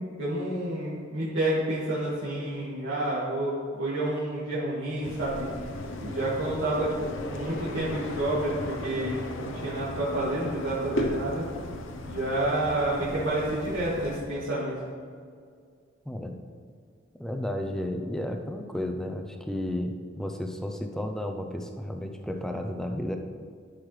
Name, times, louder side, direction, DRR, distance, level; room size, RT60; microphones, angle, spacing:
voice 1, 0.0-5.5 6.0-11.4 12.1-14.8, right 1 dB, 85° right, -10 dB, 1.9 m, -29 dB
sound 1, 5.0-14.2, left 2 dB, 85° left, 0.8 m, -36 dB
voice 2, 16.0-16.4 17.2-23.2, left 1 dB, 5° left, 4 dB, 0.6 m, -32 dB
12.0 x 6.4 x 3.3 m, 2.1 s
head